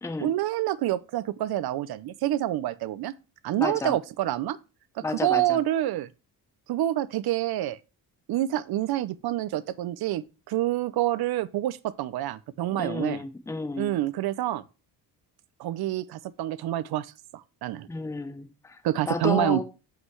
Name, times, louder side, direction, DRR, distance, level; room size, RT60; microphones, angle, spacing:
voice 1, 0.2-3.1 3.4-4.6 5.0-6.1 6.7-7.8 8.3-13.2 13.8-14.6 15.6-17.1 17.3-17.9 18.8-19.6, right 13 dB, 65° right, 0.7 m, -27 dB
voice 2, 3.6-3.9 5.0-5.6 12.8-13.9 17.9-18.8 19.1-19.6, left 3 dB, 5° left, 0.6 m, -31 dB
7.6 x 5.7 x 3.1 m
cardioid pair, 165°, 40 cm